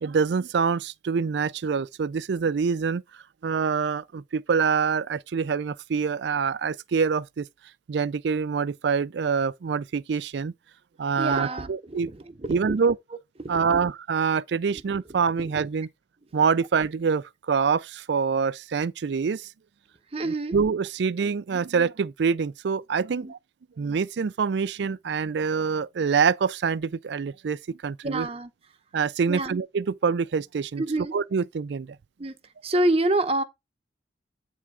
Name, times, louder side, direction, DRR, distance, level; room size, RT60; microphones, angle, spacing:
voice 1, 0.0-3.0 3.4-7.5 7.9-10.5 11.0-12.1 12.5-12.9 13.5-15.9 16.3-19.5 20.2-23.4 23.8-28.3 28.9-30.8 31.1-32.0, right 5 dB, 70° right, 0.4 m, -25 dB
voice 2, 11.2-12.8 13.4-13.9 14.7-14.8 20.1-20.5 23.1-23.3 28.0-28.5 29.3-29.6 30.8-31.1 32.2-32.4 32.6-33.4, right 2 dB, 35° right, 0.8 m, -27 dB
8.5 x 3.3 x 4.8 m
head